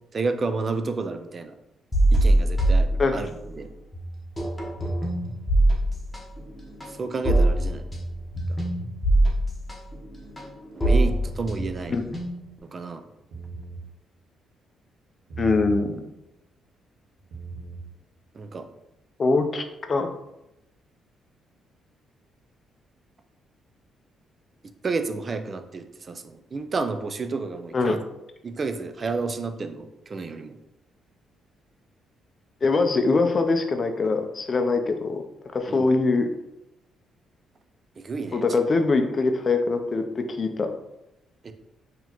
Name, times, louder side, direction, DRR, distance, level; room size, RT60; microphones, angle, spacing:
voice 1, 0.1-1.5 2.1-3.3 3.5-3.7 7.0-7.9 10.7-12.0 12.6-13.0 18.3-18.7 24.8-28.0 28.4-30.6 35.7-35.9 38.0-38.4 41.4-41.5, right 4 dB, 40° right, 8 dB, 0.4 m, -30 dB
sound 1, 1.9-3.6 3.9-12.6, right 1 dB, 15° left, 1.0 m, -23 dB
sound 2, 11.3-11.8 13.2-13.8 15.3-15.8 17.2-17.8, right 5 dB, 85° right, 1.2 m, -37 dB
voice 2, 15.4-16.1 19.2-20.1 27.7-28.0 32.6-35.2 35.5-36.3 38.3-40.7, left 3 dB, 40° left, 6 dB, 0.5 m, -23 dB
4.0 x 2.9 x 2.9 m, 0.90 s
cardioid pair, 90°, 0 cm